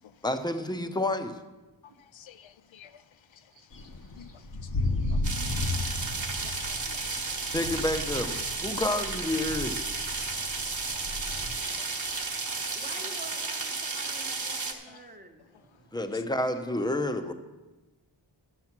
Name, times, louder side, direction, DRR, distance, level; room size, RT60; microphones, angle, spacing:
voice 1, 0.2-1.4 7.5-9.8 15.9-17.3, left 1 dB, 10° left, 0.7 m, -29 dB
voice 2, 1.8-5.0 6.4-7.5 9.0-9.1 10.6-13.1 14.9-15.2 15.5-15.8 16.1-16.2 16.8-16.9, left 9 dB, 75° left, 0.6 m, -54 dB
voice 3, 3.5-5.1 6.8-6.9 10.2-12.8 14.9-15.0 15.6-16.0, right 6 dB, 75° right, 1.0 m, -63 dB
sound 1, 3.7-11.6, left 2 dB, 45° left, 0.8 m, -34 dB
sound 2, 5.2-14.7, right 3 dB, 40° right, 1.3 m, -33 dB
voice 4, 12.8-15.7, right 2 dB, 20° right, 0.9 m, -47 dB
12.0 x 6.9 x 5.9 m
wide cardioid pair, 115°, 47 cm